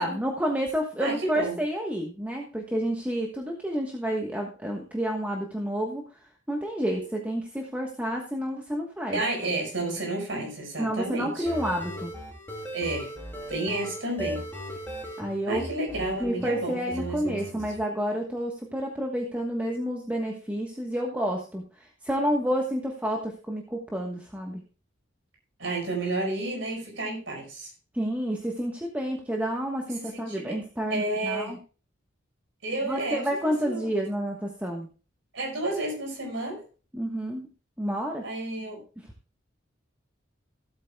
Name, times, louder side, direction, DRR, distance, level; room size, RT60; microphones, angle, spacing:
voice 1, 0.0-6.0 6.5-9.2 10.8-12.1 15.2-15.6 16.2-24.6 27.9-31.6 32.8-34.9 36.9-37.5 37.8-38.2 39.0-39.1, equal, 10° right, 0 dB, 1.3 m, -29 dB
voice 2, 1.0-1.6 9.1-11.5 12.7-13.1 13.5-14.4 15.5-17.6 25.6-27.7 30.1-30.6 30.9-31.5 32.6-33.9 35.3-36.6 38.2-38.8, right 2 dB, 70° right, 1 dB, 5.2 m, -31 dB
sound 1, 11.3-16.7 16.9-17.8, equal, 10° left, 2.9 m, -38 dB
16.0 x 8.5 x 2.3 m, 0.34 s
head